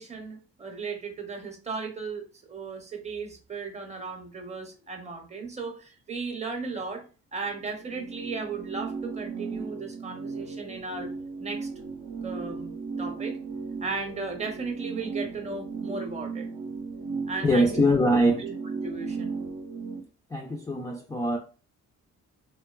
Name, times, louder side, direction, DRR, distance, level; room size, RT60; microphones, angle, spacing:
voice 1, 0.0-7.0 7.3-11.1 11.4-11.7 12.2-13.4 13.8-16.5 17.3-18.5 18.8-19.4, right 4 dB, 20° right, 0.6 m, -36 dB
sound 1, 7.5-20.0, right 4 dB, 75° right, 0.6 m, -36 dB
voice 2, 17.4-18.5 20.3-21.4, equal, 10° left, 0.3 m, -23 dB
2.6 x 2.3 x 2.2 m
cardioid pair, 90°, 30 cm